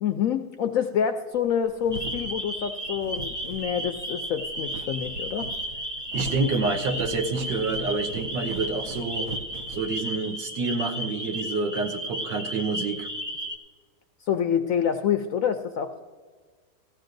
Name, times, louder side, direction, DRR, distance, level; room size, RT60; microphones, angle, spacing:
voice 1, 0.0-5.5 14.2-16.0, left 8 dB, 70° left, 8 dB, 0.8 m, -27 dB
sound 1, 1.4-10.4, right 3 dB, 65° right, 1.0 m, -40 dB
sound 2, 1.9-13.6, equal, 15° right, 0.6 m, -34 dB
voice 2, 6.1-9.3 9.7-13.1, right 3 dB, 80° right, 4 dB, 1.6 m, -28 dB
18.0 x 14.5 x 2.6 m, 1.5 s
omnidirectional pair, 1.9 m